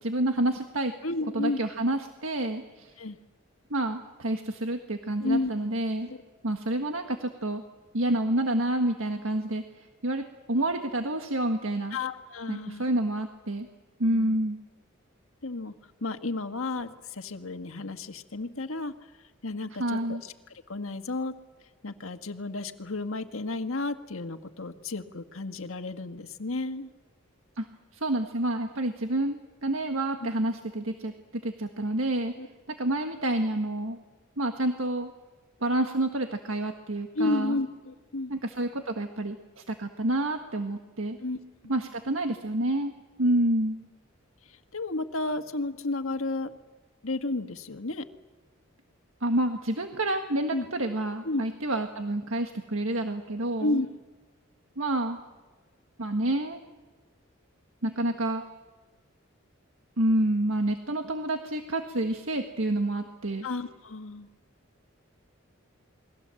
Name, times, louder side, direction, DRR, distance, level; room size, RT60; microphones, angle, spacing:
voice 1, 0.0-0.9 1.3-2.9 3.7-6.1 6.4-7.6 7.9-9.6 10.0-12.0 12.5-13.7 14.0-14.6 19.8-20.2 27.6-27.7 27.9-31.1 31.4-32.3 32.8-34.0 34.4-35.1 35.6-37.6 38.3-41.2 41.7-42.9 43.2-43.8 49.2-53.8 54.8-55.2 56.0-56.6 57.8-58.5 60.0-63.5, right 1 dB, 85° right, 5 dB, 1.6 m, -28 dB
voice 2, 1.0-1.6 3.0-3.2 5.2-5.5 6.1-6.2 11.9-12.8 14.1-14.3 15.4-15.7 16.0-18.9 19.4-20.3 20.7-21.3 21.8-26.9 32.4-32.5 37.1-38.3 41.2-41.4 41.6-41.7 44.7-46.5 47.0-48.1 50.5-50.7 51.2-51.4 53.6-53.9 63.4-64.3, left 2 dB, 90° left, 7 dB, 1.6 m, -32 dB
29.0 x 21.5 x 7.7 m, 1.3 s
head